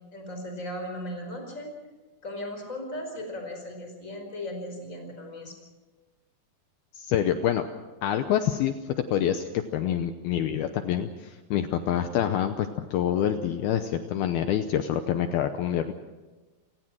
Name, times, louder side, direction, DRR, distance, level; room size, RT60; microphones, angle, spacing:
voice 1, 0.1-1.7 2.2-5.5, left 1 dB, 15° left, 3 dB, 4.7 m, -37 dB
voice 2, 6.9-7.7 8.0-9.4 9.7-15.9, left 10 dB, 75° left, 8 dB, 2.4 m, -26 dB
29.5 x 18.0 x 6.2 m, 1.2 s
omnidirectional pair, 5.3 m